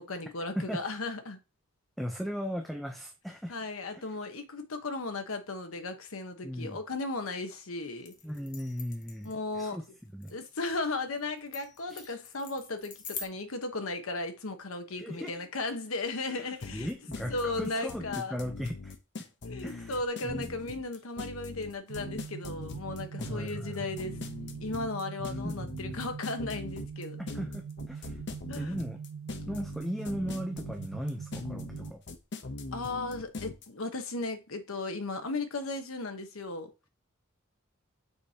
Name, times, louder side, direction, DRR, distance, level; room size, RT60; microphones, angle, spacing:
voice 1, 0.0-1.4 3.5-8.1 9.2-9.8 10.3-16.9 17.3-18.4 19.4-24.2 24.6-27.2 28.5-28.7 32.7-36.7, left 3 dB, 80° left, 1.1 m, -36 dB
voice 2, 2.0-3.5 6.4-6.8 8.2-9.8 10.1-10.4 11.9-12.0 15.0-15.3 16.3-18.9 19.6-19.9 20.2-20.5 23.2-23.9 25.4-25.9 27.3-28.2 28.5-29.0 29.5-32.0, equal, ahead, 0.6 m, -37 dB
sound 1, 8.0-13.3, left 5 dB, 40° left, 1.2 m, -45 dB
sound 2, 16.6-33.7, left 3 dB, 60° left, 0.8 m, -41 dB
sound 3, 21.9-31.9, right 6 dB, 65° right, 0.3 m, -42 dB
6.8 x 5.0 x 2.8 m
head